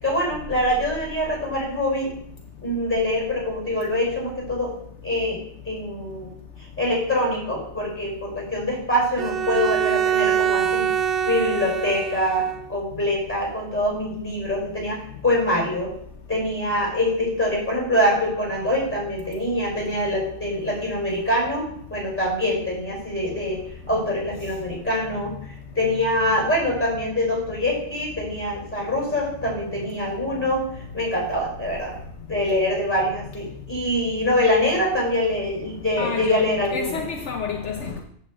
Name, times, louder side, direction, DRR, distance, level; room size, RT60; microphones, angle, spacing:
voice 1, 0.0-2.1 2.6-4.7 5.0-5.4 5.6-6.3 6.8-10.9 11.2-15.0 15.2-15.9 16.3-25.3 25.7-30.7 30.9-31.9 32.3-37.0, left 1 dB, 10° left, 4.9 m, -24 dB
Bowed string instrument, 9.2-12.7, right 9 dB, 55° right, 0.8 m, -24 dB
voice 2, 36.0-38.0, left 5 dB, 70° left, 1.2 m, -29 dB
8.8 x 4.8 x 7.5 m
omnidirectional pair, 1.3 m